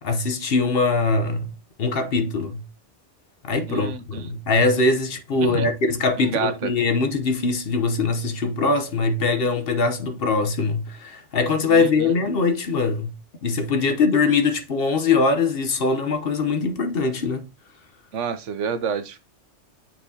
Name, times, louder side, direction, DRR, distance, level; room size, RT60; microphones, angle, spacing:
voice 1, 0.0-1.5 1.8-2.6 3.4-13.1 13.4-17.4, left 3 dB, 55° left, 1.0 m, -22 dB
voice 2, 3.7-4.3 5.4-5.7 6.2-6.7 11.7-12.1 18.1-19.2, right 6 dB, 80° right, 1.1 m, -29 dB
8.7 x 4.4 x 2.7 m
omnidirectional pair, 1.2 m